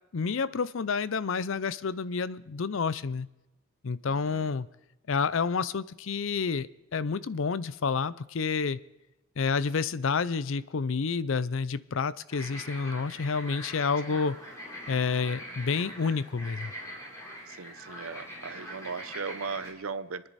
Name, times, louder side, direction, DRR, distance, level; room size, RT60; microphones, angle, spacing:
voice 1, 0.1-3.3 3.8-4.7 5.1-8.8 9.4-14.4 14.9-16.7, left 5 dB, 65° left, 17 dB, 0.5 m, -29 dB
voice 2, 4.1-4.5 14.1-14.2 17.5-20.3, right 5 dB, 80° right, 14 dB, 0.7 m, -38 dB
sound 1, 12.3-19.7, equal, 15° left, 3.4 m, -43 dB
27.5 x 10.5 x 4.2 m, 0.95 s
head